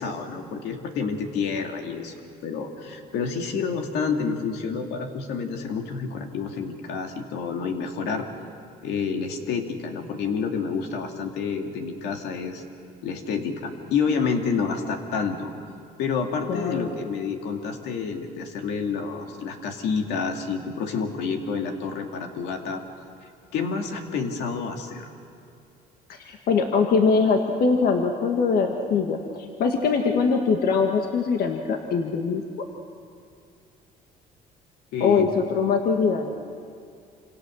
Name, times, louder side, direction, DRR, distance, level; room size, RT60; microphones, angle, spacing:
voice 1, 0.0-2.1 2.4-8.3 8.8-12.6 13.0-15.5 16.0-22.8 23.5-25.1 34.9-35.3, left 5 dB, 85° left, 3 dB, 2.5 m, -29 dB
voice 2, 16.5-17.0 26.1-32.7 35.0-36.3, left 5 dB, 65° left, 3 dB, 1.9 m, -22 dB
27.0 x 26.5 x 6.5 m, 2.4 s
cardioid pair, 110°, 17 cm